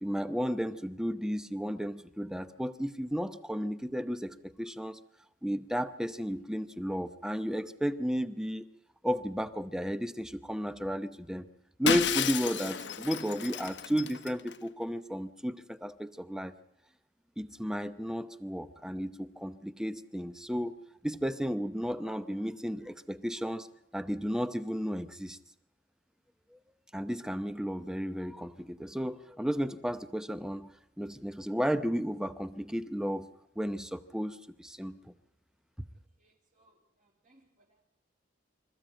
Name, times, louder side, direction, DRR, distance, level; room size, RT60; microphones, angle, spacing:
voice 1, 0.0-5.0 5.4-8.7 9.0-11.5 11.8-16.5 17.4-20.8 21.0-23.7 23.9-25.4 26.9-30.7 31.0-33.3 33.6-35.1, equal, 5° right, 12 dB, 0.8 m, -33 dB
Shatter, 11.9-14.5, left 6 dB, 65° left, 1.1 m, -32 dB
voice 2, 36.2-37.8, right 1 dB, 40° right, -3 dB, 3.1 m, -68 dB
26.0 x 14.5 x 8.9 m, 0.85 s
head